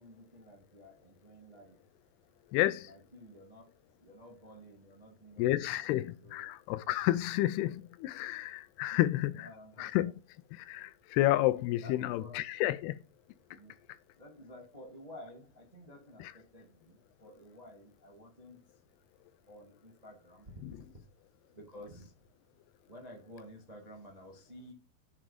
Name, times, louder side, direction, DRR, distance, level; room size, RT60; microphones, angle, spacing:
voice 1, 0.0-1.8 2.8-3.6 4.0-6.4 8.9-9.1 9.3-9.9 11.8-12.4 13.5-13.7 14.2-18.6 19.5-20.6 20.9-21.0 21.5-22.1 22.9-24.7, equal, 20° right, 1.0 m, -52 dB
voice 2, 2.5-2.9 5.4-9.5 9.8-10.1 10.5-13.0 16.2-16.3 20.6-20.7, left 15 dB, 80° left, 2.5 m, -30 dB
9.2 x 7.2 x 5.0 m
omnidirectional pair, 4.7 m